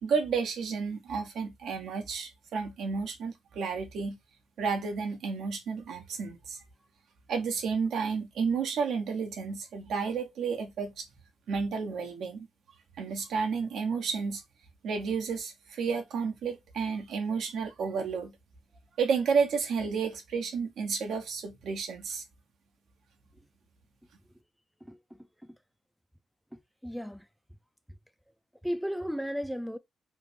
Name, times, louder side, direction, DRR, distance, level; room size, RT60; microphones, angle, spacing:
voice 1, 0.0-4.2 4.6-6.6 7.3-11.1 11.5-12.5 13.0-14.4 14.8-18.3 19.0-22.2, right 5 dB, 70° right, 0.9 m, -31 dB
voice 2, 24.8-25.6 26.5-27.3 28.6-29.8, equal, ahead, 0.4 m, -36 dB
3.1 x 2.5 x 3.3 m
cardioid pair, 90°, 0 cm